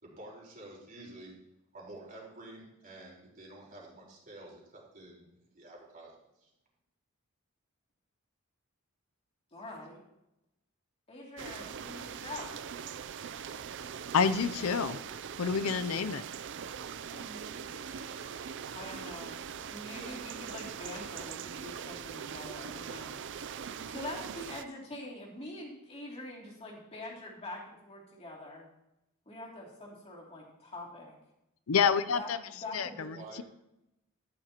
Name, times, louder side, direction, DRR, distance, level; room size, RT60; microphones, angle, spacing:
voice 1, 0.0-1.3 1.7-6.5 33.1-33.4, right 2 dB, 40° right, 4.2 m, -50 dB
voice 2, 9.5-10.0 11.1-12.5 15.7-15.9 17.1-18.2 18.7-19.4 19.7-23.2 23.8-28.7 29.3-31.1 32.1-33.1, left 1 dB, 30° left, 2.7 m, -45 dB
sound 1, 11.4-24.6, right 7 dB, 60° right, 0.5 m, -41 dB
voice 3, 14.1-15.0 15.4-16.2 31.7-32.4 32.7-33.4, left 6 dB, 80° left, 0.5 m, -28 dB
13.5 x 10.5 x 3.0 m
head